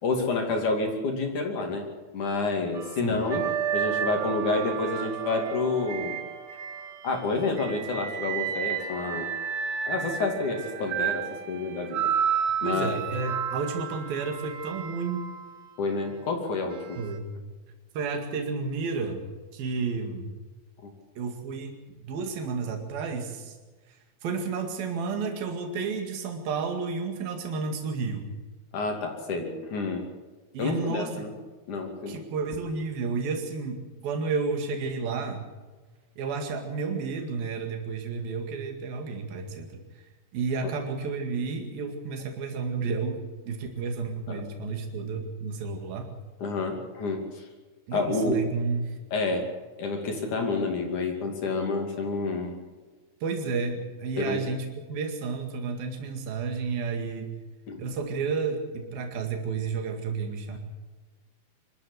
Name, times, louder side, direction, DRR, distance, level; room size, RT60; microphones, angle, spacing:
voice 1, 0.0-1.8 2.1-3.4 3.7-6.2 7.0-9.3 9.9-12.0 12.6-13.0 15.8-17.0 20.8-20.9 28.7-30.0 30.6-31.3 31.7-32.2 44.3-44.4 46.4-47.4 47.9-48.4 49.1-49.5 49.8-52.6 54.2-54.4 57.7-57.8, left 3 dB, 55° left, 3 dB, 4.0 m, -29 dB
sound 1, 2.7-7.1 7.6-15.7 16.7-16.9, right 8 dB, 50° right, 1.9 m, -32 dB
voice 2, 12.6-15.3 17.0-17.3 17.9-19.2 19.5-20.3 21.2-23.6 23.9-28.3 30.5-31.3 32.1-35.4 36.2-40.0 40.3-43.2 43.5-46.1 47.9-49.0 53.2-57.3 57.8-60.6, right 4 dB, 75° right, 4 dB, 4.0 m, -31 dB
25.0 x 13.5 x 8.1 m, 1.3 s
omnidirectional pair, 4.2 m